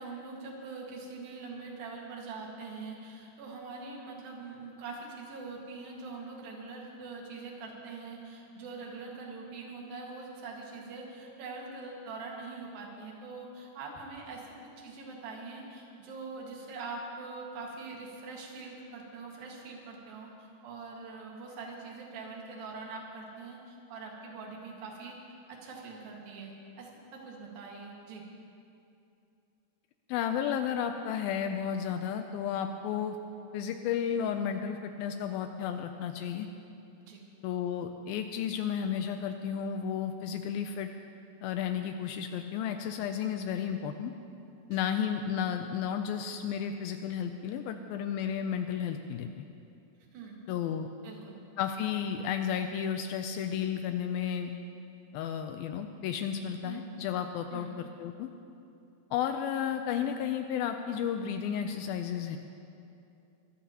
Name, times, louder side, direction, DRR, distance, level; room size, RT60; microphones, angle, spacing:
voice 1, 0.0-14.5 14.8-25.2 25.5-26.5 26.8-28.2 37.0-37.2 44.7-44.9 50.1-50.4 51.0-51.4 56.6-56.9 57.5-57.8, right 4 dB, 70° right, -1 dB, 3.6 m, -43 dB
voice 2, 30.1-33.2 33.5-36.5 37.4-40.9 41.4-44.1 44.7-49.3 50.5-50.9 51.6-54.5 55.1-58.3 59.1-62.4, left 8 dB, 85° left, 6 dB, 2.3 m, -33 dB
23.0 x 15.0 x 2.9 m, 2.6 s
omnidirectional pair, 4.4 m